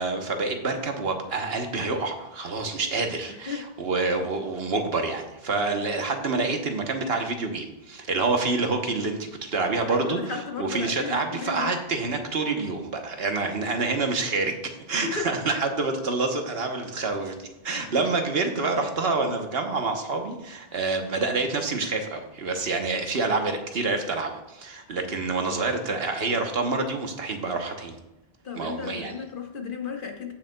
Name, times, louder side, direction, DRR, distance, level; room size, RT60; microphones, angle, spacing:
voice 1, 0.0-28.0 28.6-29.1, right 3 dB, 70° right, 4 dB, 1.2 m, -27 dB
voice 2, 3.3-3.8 9.9-11.8 15.0-15.3 17.7-18.0 28.4-30.3, left 5 dB, 55° left, 2 dB, 1.3 m, -34 dB
16.0 x 6.3 x 2.3 m, 0.97 s
omnidirectional pair, 1.1 m